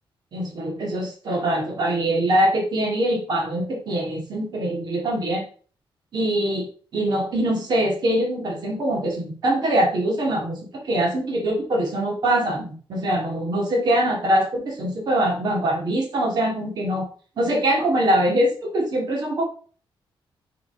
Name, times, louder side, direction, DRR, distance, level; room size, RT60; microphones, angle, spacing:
voice 1, 0.3-5.4 6.1-6.7 6.9-17.1 17.4-19.4, right 1 dB, 50° right, -1 dB, 2.0 m, -23 dB
7.2 x 4.0 x 3.8 m, 0.41 s
wide cardioid pair, 165°, 9 cm